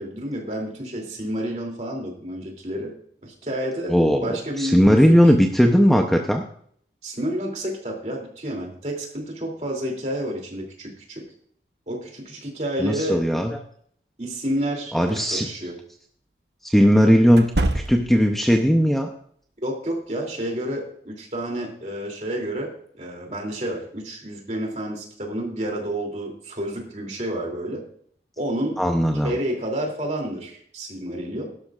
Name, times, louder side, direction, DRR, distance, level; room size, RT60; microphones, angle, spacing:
voice 1, 0.0-2.9 3.2-5.1 7.0-11.2 11.9-13.2 14.2-15.8 19.6-27.8 28.4-28.8 29.2-31.5, right 1 dB, 40° right, 0 dB, 2.8 m, -30 dB
voice 2, 3.9-6.4 12.8-13.6 14.9-15.5 16.6-17.5 17.7-19.1 28.8-29.3, equal, ahead, 3 dB, 0.6 m, -18 dB
sound 1, 15.1-15.3 17.3-18.3, right 1 dB, 75° right, 1.0 m, -26 dB
16.5 x 12.0 x 2.4 m, 0.62 s
head